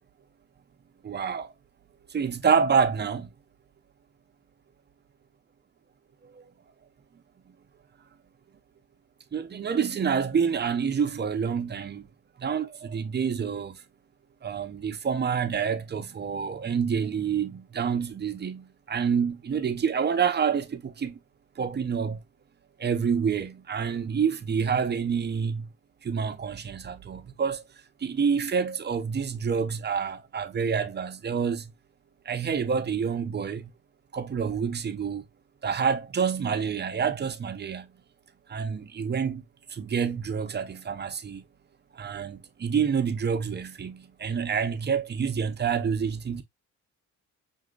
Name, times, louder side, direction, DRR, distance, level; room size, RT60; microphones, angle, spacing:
voice 1, 1.0-1.5 2.1-3.3 6.2-6.4 9.3-12.1 12.4-13.8 14.4-21.2 21.6-22.2 22.8-25.7 26.0-27.6 28.0-31.7 32.2-33.7 34.1-35.2 35.6-37.9 38.5-39.4 39.7-41.4 41.9-46.4, right 6 dB, 35° right, 0.7 m, -28 dB
6.0 x 2.8 x 2.4 m
cardioid pair, 90°, 30 cm